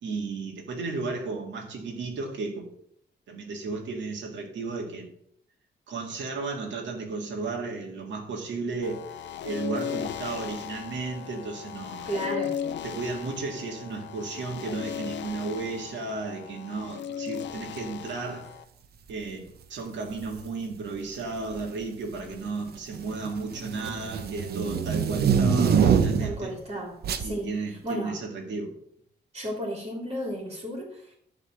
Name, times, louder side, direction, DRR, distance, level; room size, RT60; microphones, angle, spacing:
voice 1, 0.0-2.7 3.3-5.1 5.9-9.2 9.4-12.3 12.8-18.5 19.1-26.5 27.2-28.7, right 3 dB, 90° right, 1.9 m, -34 dB
sound 1, 8.8-18.6, left 9 dB, 75° left, 0.6 m, -37 dB
voice 2, 12.0-12.6 26.2-27.5 27.8-28.2 29.3-31.2, equal, 30° right, 2.7 m, -33 dB
sound 2, 20.1-20.4 21.4-21.8 22.2-26.4 27.0-27.3, right 6 dB, 60° right, 0.8 m, -25 dB
11.0 x 4.0 x 7.7 m
wide cardioid pair, 175°, 19 cm